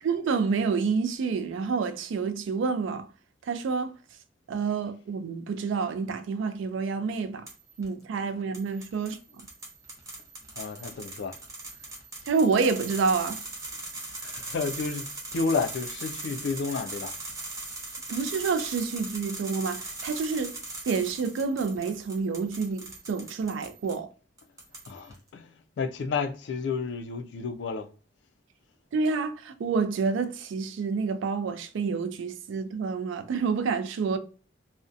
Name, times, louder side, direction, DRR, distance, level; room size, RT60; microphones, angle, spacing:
voice 1, 0.0-3.1 3.5-3.9 4.5-7.5 7.8-9.2 12.3-13.4 18.1-20.5 20.9-24.1 28.9-34.2, right 5 dB, 70° right, 0.3 m, -28 dB
sound 1, 7.5-7.9 8.5-24.0 24.4-25.2, right 2 dB, 15° right, 0.6 m, -40 dB
voice 2, 10.6-11.4 14.2-15.1 15.3-17.1 24.9-25.5 25.8-27.9, left 4 dB, 60° left, 0.3 m, -31 dB
2.5 x 2.1 x 2.4 m
head